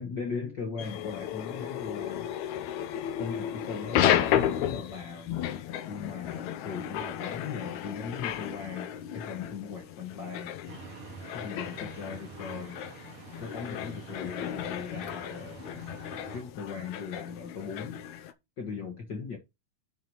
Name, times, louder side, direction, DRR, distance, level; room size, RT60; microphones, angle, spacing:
voice 1, 0.0-2.3 3.2-5.3 5.9-8.9 9.1-10.5 11.3-12.8 13.4-15.8 16.3-18.0 18.6-19.4, left 5 dB, 50° left, 1.4 m, -38 dB
sound 1, 0.8-18.3, left 10 dB, 75° left, 2.1 m, -33 dB
sound 2, 10.7-16.4, right 6 dB, 55° right, 1.9 m, -47 dB
7.8 x 4.7 x 5.4 m
omnidirectional pair, 3.6 m